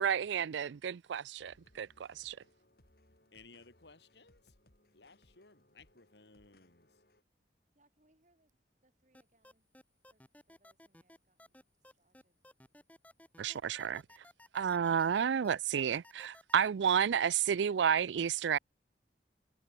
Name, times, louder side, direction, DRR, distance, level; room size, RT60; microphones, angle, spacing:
voice 1, 0.0-2.4 13.4-14.0 14.5-18.6, right 8 dB, 85° right, 0.4 m, -31 dB
sound 1, 1.4-7.2, left 1 dB, 55° left, 3.4 m, -68 dB
voice 2, 3.3-4.5 4.9-6.9, left 4 dB, 70° left, 2.4 m, -59 dB
voice 3, 7.7-9.7 10.1-10.2 10.5-11.6 11.9-12.4, right 1 dB, 40° right, 4.8 m, -74 dB
sound 2, 9.1-16.7, left 1 dB, 10° left, 4.1 m, -57 dB
head